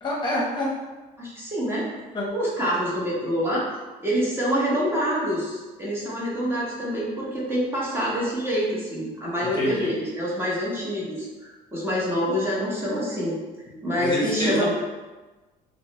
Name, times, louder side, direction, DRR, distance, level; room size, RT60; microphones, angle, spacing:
voice 1, 0.0-0.7 2.1-2.3 9.5-9.9 14.0-14.7, left 1 dB, 30° left, -3 dB, 0.9 m, -27 dB
voice 2, 1.2-1.9 2.3-3.6 4.0-13.3 13.8-14.7, equal, 15° right, -6 dB, 0.8 m, -26 dB
2.9 x 2.1 x 3.0 m, 1.2 s
cardioid pair, 110°, 17 cm